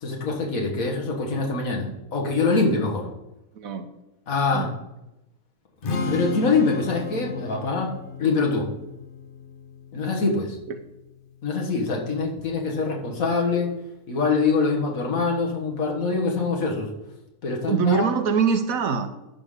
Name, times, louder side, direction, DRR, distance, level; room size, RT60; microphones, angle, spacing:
voice 1, 0.0-3.1 4.3-4.7 5.8-7.9 8.2-8.7 9.9-10.6 11.4-13.7 14.1-16.9 17.4-18.0, left 4 dB, 60° left, 0 dB, 1.8 m, -24 dB
voice 2, 3.5-3.9 4.5-4.7 17.7-19.1, right 5 dB, 65° right, 8 dB, 1.1 m, -23 dB
Strum, 5.8-12.1, left 3 dB, 45° left, 0.8 m, -35 dB
11.0 x 3.7 x 6.5 m, 0.93 s
omnidirectional pair, 1.7 m